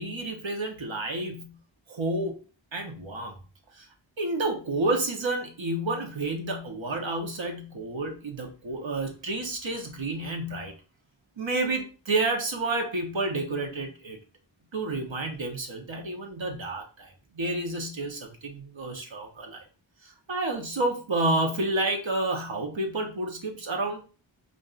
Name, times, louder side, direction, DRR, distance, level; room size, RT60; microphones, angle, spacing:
voice 1, 0.0-1.6 1.9-2.4 2.7-3.3 3.8-3.9 4.2-10.7 11.4-14.2 14.7-19.6 20.3-24.0, right 2 dB, 70° right, 3 dB, 1.0 m, -30 dB
5.2 x 2.5 x 2.4 m, 0.36 s
wide cardioid pair, 40°, 47 cm